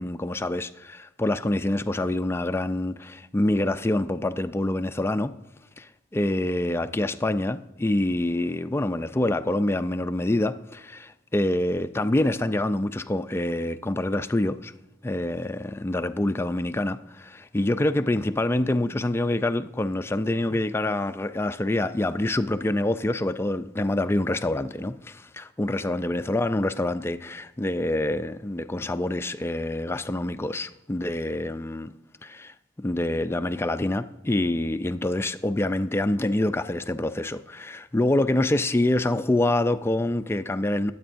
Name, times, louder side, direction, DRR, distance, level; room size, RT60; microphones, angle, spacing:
voice 1, 0.0-5.3 5.8-14.7 15.0-31.9 32.2-40.9, left 1 dB, 15° left, 0.3 m, -26 dB
21.5 x 8.6 x 2.6 m
head